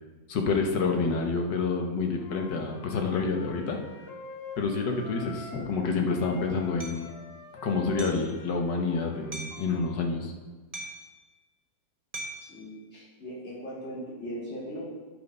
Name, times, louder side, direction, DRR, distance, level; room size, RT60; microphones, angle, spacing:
voice 1, 0.3-3.8 4.6-7.1 7.6-10.3, left 4 dB, 85° left, 2 dB, 1.8 m, -28 dB
Wind instrument woodwind instrument, 2.1-5.8 6.1-10.0, left 1 dB, 70° left, 1.8 m, -46 dB
Hammer, 6.8-7.0 8.0-8.3 9.3-9.7 10.7-11.1 12.1-12.5, right 2 dB, 25° right, 0.9 m, -39 dB
voice 2, 12.4-14.8, equal, 40° left, -9 dB, 3.9 m, -39 dB
10.5 x 6.1 x 5.3 m, 1.3 s
omnidirectional pair, 1.8 m